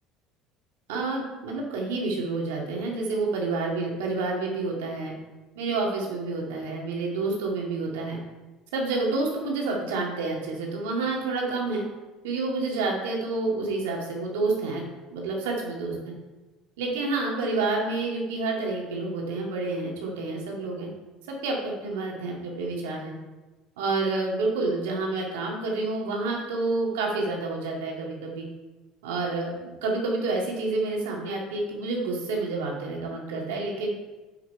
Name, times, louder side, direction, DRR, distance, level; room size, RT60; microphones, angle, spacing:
voice 1, 0.9-5.2 5.6-8.2 8.7-11.8 12.2-14.8 15.1-16.2 16.8-20.9 21.3-23.1 23.8-28.5 29.0-34.0, right 3 dB, 85° right, -1 dB, 2.1 m, -29 dB
7.5 x 6.6 x 4.5 m, 1.2 s
supercardioid pair, 85°, 0 cm